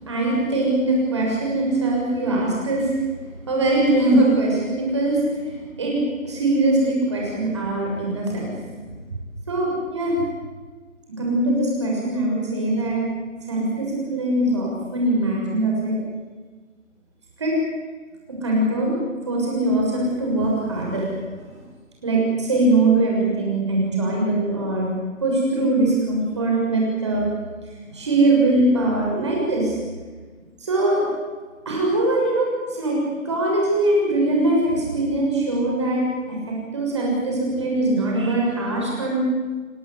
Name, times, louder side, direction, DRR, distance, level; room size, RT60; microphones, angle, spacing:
voice 1, 0.0-2.9 3.5-8.7 9.5-10.2 11.1-13.0 13.5-16.0 17.4-17.5 18.4-18.9 19.2-21.1 22.0-24.9 25.2-27.2 27.9-29.8 30.6-31.0 31.6-39.2, right 2 dB, 20° right, -2 dB, 6.9 m, -22 dB
29.0 x 18.0 x 8.3 m, 1.4 s
figure-of-eight pair, 175°, 42 cm